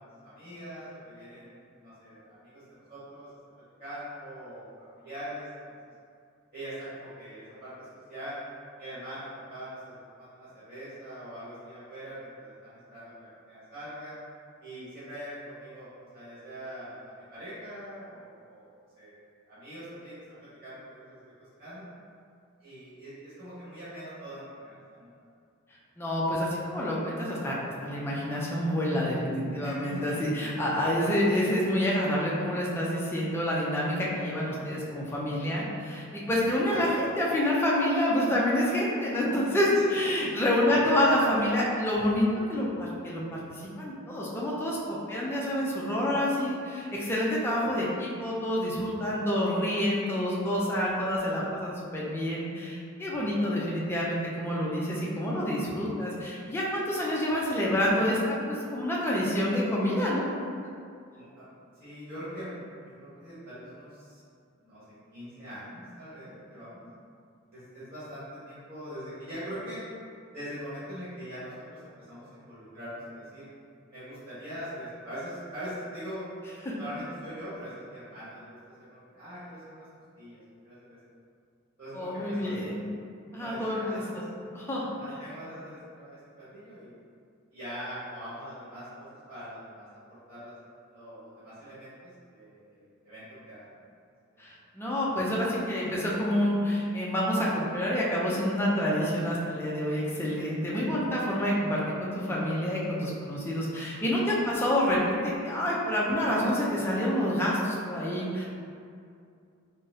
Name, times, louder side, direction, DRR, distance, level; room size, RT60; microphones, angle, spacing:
voice 1, 0.0-3.3 3.8-5.7 6.5-8.4 8.8-14.2 14.6-15.9 16.1-18.7 19.0-19.1 19.4-20.1 20.6-21.2 21.6-21.9 22.6-25.1 29.6-30.1 39.9-40.0 40.6-40.8 61.1-61.5 61.8-62.5 62.8-64.2 64.6-64.8 65.1-66.8 67.5-69.8 70.3-73.5 73.9-76.2 76.8-79.9 80.2-81.0 81.8-82.7 83.3-84.0 84.9-86.9 87.5-90.5 90.9-93.6 94.3-94.4 100.6-100.7, equal, 30° right, -14 dB, 1.2 m, -42 dB
voice 2, 26.0-27.5 27.8-60.3 76.6-76.7 81.9-82.8 83.3-84.2 84.5-84.9 94.4-108.4, left 1 dB, 10° left, -6 dB, 0.4 m, -28 dB
3.8 x 2.0 x 2.6 m, 2.4 s
head